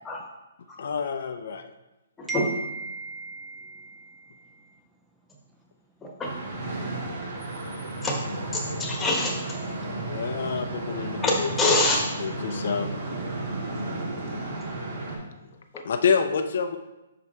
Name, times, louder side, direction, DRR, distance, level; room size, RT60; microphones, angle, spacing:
voice 1, 0.8-1.7 10.0-11.7 12.2-12.9 15.8-16.8, left 6 dB, 65° left, 7 dB, 0.5 m, -27 dB
voice 2, 2.3-4.5, right 3 dB, 5° right, 1 dB, 0.5 m, -36 dB
sound 1, 6.2-15.2, right 2 dB, 55° right, 2.3 m, -33 dB
voice 3, 8.5-9.4 11.2-12.1, left 2 dB, 15° left, -1 dB, 1.3 m, -24 dB
5.8 x 5.0 x 4.2 m, 1.0 s
hypercardioid pair, 140°, 0 cm